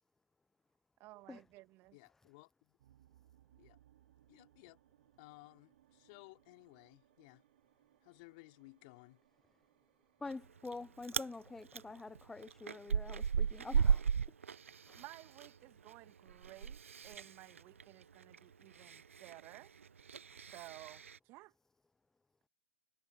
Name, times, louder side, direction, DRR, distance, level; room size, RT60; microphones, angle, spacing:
voice 1, 1.0-2.0 14.9-19.7 20.5-21.5, right 20 dB, 30° right, 2.2 m, -55 dB
voice 2, 1.9-2.8 3.6-3.8 4.3-4.8 5.2-7.4 8.0-9.2, left 27 dB, 40° left, 3.4 m, -58 dB
sound 1, 2.8-18.5, right 12 dB, 55° right, 4.7 m, -72 dB
voice 3, 10.2-14.1 14.9-15.0, left 3 dB, 5° left, 0.4 m, -47 dB
Chewing mastication, 10.3-10.7 11.0-11.3 11.7-15.5 15.8-21.2, right 6 dB, 75° right, 0.6 m, -36 dB
hypercardioid pair, 125°, 7 cm